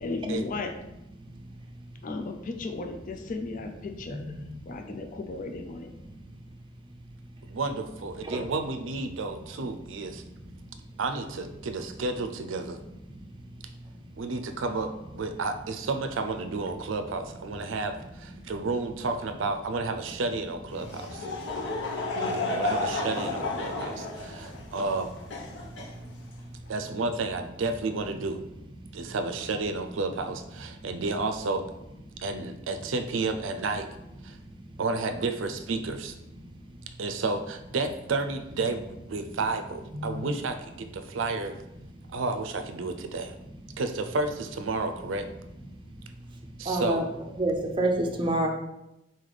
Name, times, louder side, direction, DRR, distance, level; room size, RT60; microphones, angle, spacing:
voice 1, 0.0-0.7 2.0-4.2 4.7-5.9, left 3 dB, 45° left, 5 dB, 0.4 m, -35 dB
voice 2, 4.1-4.7 8.2-8.4 21.5-21.6 24.5-24.6 25.8-25.9 39.9-40.2 43.7-43.8 45.9-46.0 46.6-47.0 47.4-48.5, right 1 dB, 25° right, 1 dB, 0.6 m, -29 dB
voice 3, 7.4-10.2 11.0-12.8 14.2-21.3 22.5-25.1 26.7-28.4 28.9-31.7 32.2-33.9 34.2-34.4 34.8-36.2 37.0-41.6 42.1-43.3 43.8-45.3 46.6-47.0, right 3 dB, 75° right, 8 dB, 0.5 m, -31 dB
Laughter / Crowd, 20.7-26.5, left 2 dB, 65° left, 0.9 m, -32 dB
4.0 x 3.3 x 4.0 m, 0.90 s
head